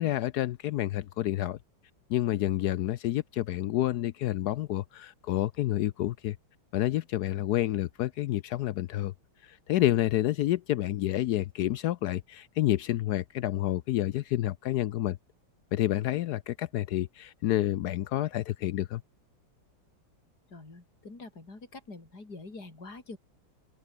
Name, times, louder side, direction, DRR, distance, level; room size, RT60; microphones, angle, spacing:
voice 1, 0.0-1.6 2.1-6.4 6.7-9.1 9.4-15.2 15.7-19.0, left 14 dB, 75° left, 0.9 m, -29 dB
voice 2, 20.5-23.2, left 3 dB, 50° left, 5.7 m, -45 dB
open air
omnidirectional pair, 2.2 m